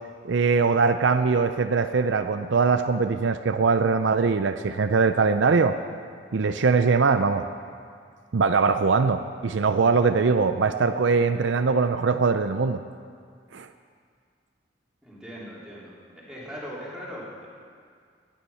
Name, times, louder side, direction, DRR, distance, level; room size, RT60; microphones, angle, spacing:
voice 1, 0.3-5.8 6.3-7.5 8.3-12.8 13.5-13.7, right 4 dB, 70° right, 9 dB, 0.5 m, -22 dB
voice 2, 15.0-17.5, equal, 5° right, -7 dB, 3.5 m, -40 dB
17.5 x 10.0 x 5.6 m, 2.1 s
head